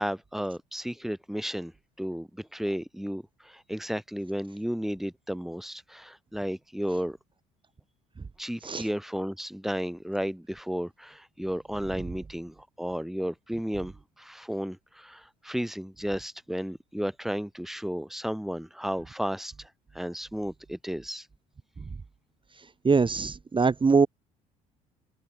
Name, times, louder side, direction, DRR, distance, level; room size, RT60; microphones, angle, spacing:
voice 1, 0.0-1.7 2.0-7.2 8.4-19.7 19.9-21.3, equal, ahead, 7.7 m, -33 dB
voice 2, 22.8-24.1, right 4 dB, 30° right, 3.1 m, -22 dB
open air
hypercardioid pair, 60°, 17 cm